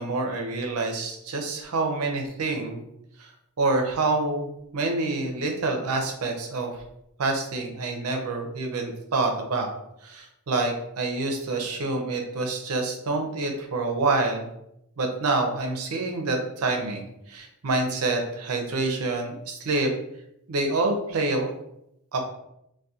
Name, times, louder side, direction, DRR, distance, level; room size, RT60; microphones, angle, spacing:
voice 1, 0.0-2.8 3.2-3.3 3.6-6.7 7.2-9.7 10.0-14.5 15.0-19.9 20.5-21.5 22.1-22.3, right 3 dB, 70° right, 3 dB, 0.5 m, -27 dB
2.3 x 2.2 x 2.7 m, 0.78 s
head